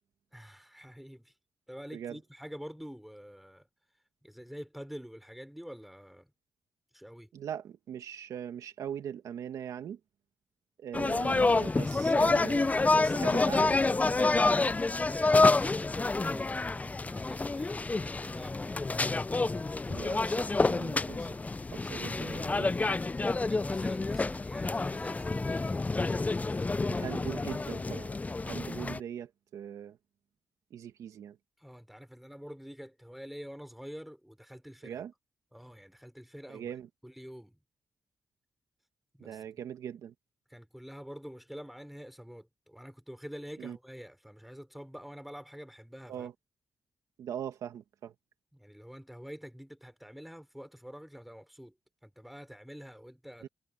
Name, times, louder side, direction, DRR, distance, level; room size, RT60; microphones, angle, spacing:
voice 1, 0.3-1.3 1.7-3.7 4.2-6.3 6.9-7.3 15.0-18.9 22.0-25.8 31.6-35.0 35.5-36.7 37.0-37.6 39.1-39.4 40.5-46.3 48.5-51.7 52.0-53.5, equal, 5° right, 5.7 m, -47 dB
voice 2, 7.3-10.0 10.8-14.0 14.2-14.5 19.9-21.3 21.7-22.7 26.9-28.1 28.4-30.0 30.7-31.4 34.8-35.1 36.5-36.9 39.2-40.1 43.6-43.8 46.1-46.3 47.2-48.1 53.4-53.5, right 9 dB, 85° right, 2.0 m, -41 dB
sound 1, 10.9-29.0, left 3 dB, 25° left, 0.5 m, -28 dB
supercardioid pair, 50°, 6 cm